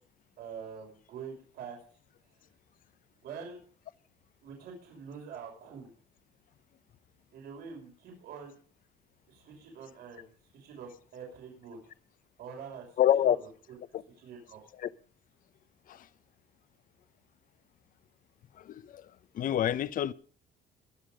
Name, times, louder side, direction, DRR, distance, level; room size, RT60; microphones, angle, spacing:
voice 1, 0.4-1.8 3.2-3.6 4.4-5.9 7.3-8.6 9.3-11.8 12.4-12.9 13.2-13.3 14.2-14.7, right 6 dB, 75° right, 5.9 m, -45 dB
voice 2, 13.0-13.4 13.9-14.0 14.8-14.9 15.9-16.1 18.6-19.1 19.3-20.1, left 11 dB, 55° left, 0.9 m, -27 dB
22.0 x 7.6 x 5.1 m
cardioid pair, 110°, 17 cm